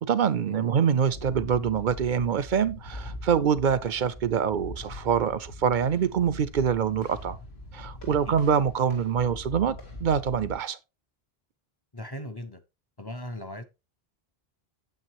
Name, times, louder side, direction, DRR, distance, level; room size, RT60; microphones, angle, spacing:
voice 1, 0.0-7.4 7.7-10.8, right 7 dB, 55° right, 0.7 m, -25 dB
sound 1, 1.1-10.5, left 1 dB, 85° left, 2.7 m, -42 dB
voice 2, 8.1-8.4 11.9-12.6 13.0-13.6, left 1 dB, 25° left, 0.7 m, -39 dB
9.2 x 7.6 x 2.9 m
omnidirectional pair, 1.1 m